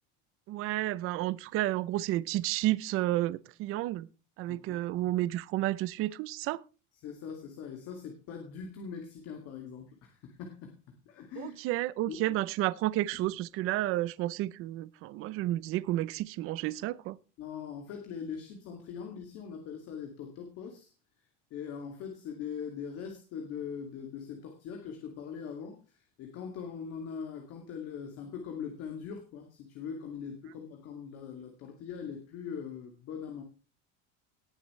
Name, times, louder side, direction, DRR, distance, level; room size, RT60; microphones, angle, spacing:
voice 1, 0.5-4.1 4.4-6.6 11.4-17.2, right 16 dB, 40° right, 0.7 m, -31 dB
voice 2, 4.5-4.8 6.9-10.7 11.1-11.6 12.1-12.4 17.4-20.9 21.5-33.4, left 7 dB, 45° left, 2.4 m, -41 dB
19.0 x 7.6 x 3.2 m
cardioid pair, 175°, 34 cm